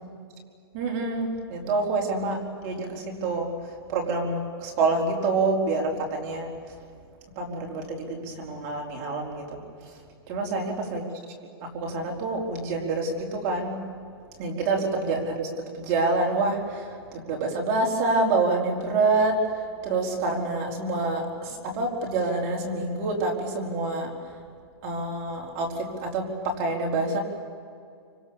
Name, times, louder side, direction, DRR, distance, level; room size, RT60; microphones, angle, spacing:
voice 1, 0.7-3.5 3.9-6.5 7.4-9.6 10.3-11.0 11.6-13.9 14.4-19.4 19.8-24.1 24.8-27.2, right 3 dB, 30° right, 0 dB, 4.4 m, -27 dB
28.0 x 25.5 x 7.2 m, 2.3 s
hypercardioid pair, 165°, 13 cm